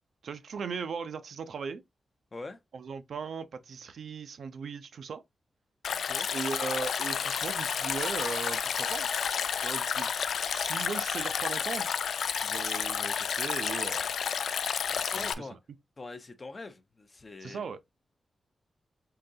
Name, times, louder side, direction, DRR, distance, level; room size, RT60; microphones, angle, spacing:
voice 1, 0.2-1.8 2.7-5.2 6.3-9.1 9.6-10.1 10.5-11.9 12.4-14.1 14.9-15.4 17.4-17.8, right 5 dB, 65° right, 0.5 m, -38 dB
Stream, 5.8-15.3, left 7 dB, 80° left, 0.3 m, -31 dB
voice 2, 5.9-6.3 15.1-15.6 16.0-17.7, left 3 dB, 25° left, 0.5 m, -43 dB
3.8 x 3.7 x 2.6 m
wide cardioid pair, 165°, 0 cm